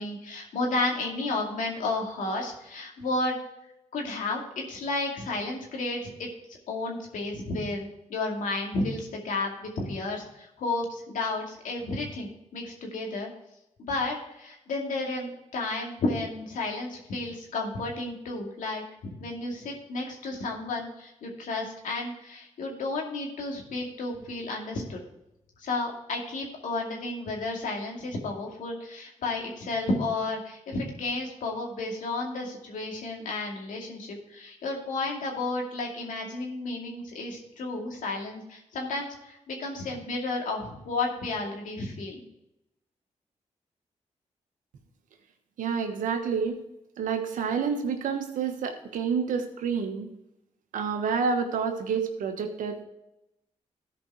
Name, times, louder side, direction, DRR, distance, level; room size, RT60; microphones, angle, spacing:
voice 1, 0.0-3.4 3.9-6.3 6.7-13.3 13.8-18.8 19.2-25.0 25.6-42.2, left 2 dB, 85° left, 0 dB, 2.3 m, -32 dB
voice 2, 45.6-46.6 47.0-50.1 50.7-52.8, right 6 dB, 90° right, 5 dB, 1.2 m, -28 dB
13.5 x 5.3 x 4.5 m, 0.88 s
cardioid pair, 55°, 13 cm